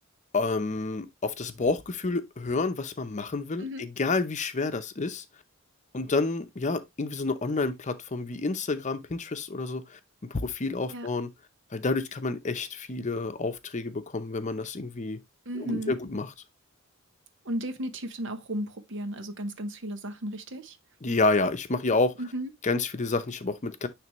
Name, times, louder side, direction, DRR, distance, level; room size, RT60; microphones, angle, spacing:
voice 1, 0.3-5.2 5.9-10.0 10.3-11.3 11.7-15.2 15.6-16.3 21.0-22.1 22.6-23.9, left 3 dB, 35° left, 0.7 m, -29 dB
voice 2, 15.5-16.0 17.4-20.8 22.2-22.5, equal, 60° right, 0.9 m, -34 dB
9.5 x 3.4 x 3.0 m
head